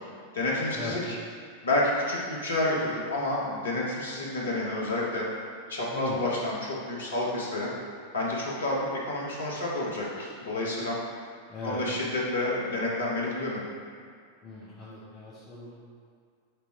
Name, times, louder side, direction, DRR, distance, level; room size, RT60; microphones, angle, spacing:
voice 1, 0.3-1.2 1.6-5.3 5.7-7.7 8.1-11.0 11.6-13.6, left 2 dB, 70° left, -4 dB, 1.3 m, -29 dB
voice 2, 5.9-6.2 11.5-11.8 14.4-15.7, left 2 dB, 30° left, -8 dB, 1.3 m, -38 dB
6.7 x 3.6 x 4.4 m, 2.2 s
figure-of-eight pair, 90°, 0 cm